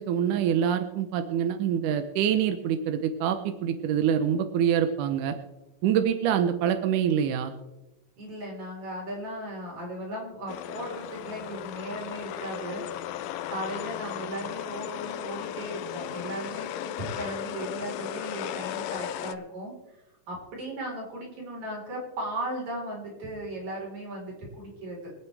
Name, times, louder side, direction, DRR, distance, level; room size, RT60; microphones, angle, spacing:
voice 1, 0.0-5.4 5.8-7.5, right 9 dB, 75° right, 8 dB, 2.1 m, -25 dB
voice 2, 8.2-19.7 20.3-25.1, right 1 dB, 55° right, -3 dB, 5.5 m, -37 dB
sound 1, 10.5-19.3, left 12 dB, 80° left, 2.1 m, -36 dB
26.0 x 8.9 x 3.4 m, 1.0 s
omnidirectional pair, 4.1 m